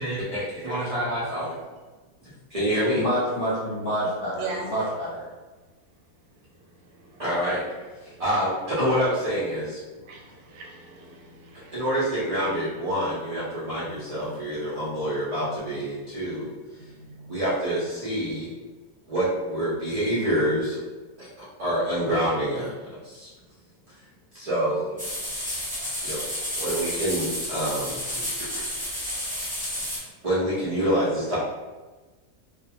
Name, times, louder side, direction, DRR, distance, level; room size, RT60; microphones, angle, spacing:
voice 1, 0.0-1.6 2.2-3.0 7.2-7.6 8.0-9.8 11.7-16.5 17.3-18.5 19.1-20.8 21.2-22.7 23.0-23.3 24.3-25.1 26.0-26.2 26.6-28.7 30.2-31.4, equal, 70° right, -9 dB, 0.3 m, -27 dB
voice 2, 2.9-5.3, equal, 50° left, -8 dB, 0.8 m, -28 dB
voice 3, 4.3-4.7 10.0-11.8 14.1-14.4 15.5-15.6 16.8-17.4, right 3 dB, 85° right, 0 dB, 1.1 m, -39 dB
sound 1, 25.0-30.0, equal, 10° right, 0.5 m, -31 dB
2.5 x 2.1 x 2.8 m, 1.2 s
omnidirectional pair, 1.6 m